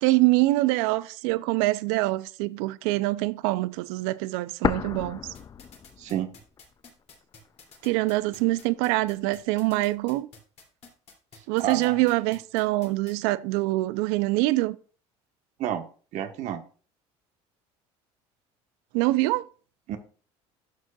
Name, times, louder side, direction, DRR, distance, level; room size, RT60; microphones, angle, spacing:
voice 1, 0.0-5.2 7.8-10.3 11.5-14.8 18.9-19.4, right 20 dB, 80° right, 0.5 m, -24 dB
sound 1, 4.6-6.6 6.9-7.0 7.7-8.6, left 7 dB, 30° left, 0.4 m, -31 dB
sound 2, 5.3-13.1, left 5 dB, 50° left, 2.7 m, -50 dB
voice 2, 6.0-6.3 11.6-12.0 15.6-15.9 16.1-16.6 19.9-20.0, right 10 dB, 60° right, 1.2 m, -30 dB
11.5 x 6.3 x 2.3 m
supercardioid pair, 90°, 14 cm